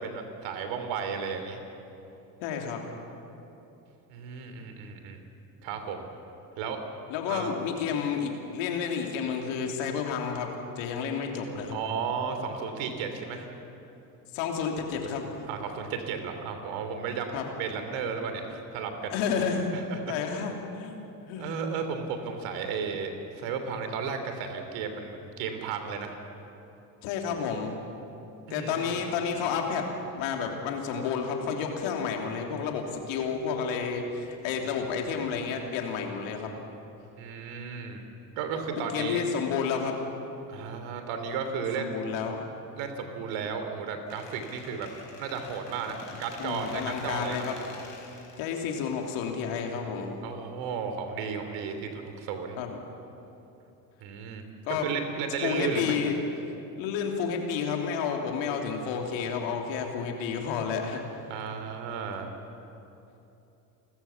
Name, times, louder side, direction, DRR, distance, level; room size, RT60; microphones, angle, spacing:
voice 1, 0.0-1.6 4.1-5.2 5.6-6.1 6.6-6.8 7.3-7.5 11.7-13.5 15.5-19.2 19.7-20.1 21.4-26.1 28.5-28.9 37.2-38.0 38.4-39.2 40.5-42.0 42.8-44.9 45.2-47.6 50.2-52.6 54.0-54.4 54.7-56.0 61.3-62.3, right 6 dB, 65° right, 7 dB, 3.1 m, -34 dB
voice 2, 2.4-2.8 7.1-11.8 14.3-15.3 17.3-17.4 19.1-19.7 20.1-21.5 27.0-27.7 28.5-29.9 30.2-36.5 38.8-40.0 41.8-42.5 45.9-46.0 46.4-47.6 48.4-50.1 52.6-52.7 54.7-54.9 55.4-56.2 56.8-61.3, left 6 dB, 65° left, 2 dB, 3.2 m, -31 dB
Squeak, 44.1-49.9, left 4 dB, 85° left, 5.0 m, -48 dB
29.5 x 14.0 x 7.3 m, 2.9 s
hypercardioid pair, 70°, 49 cm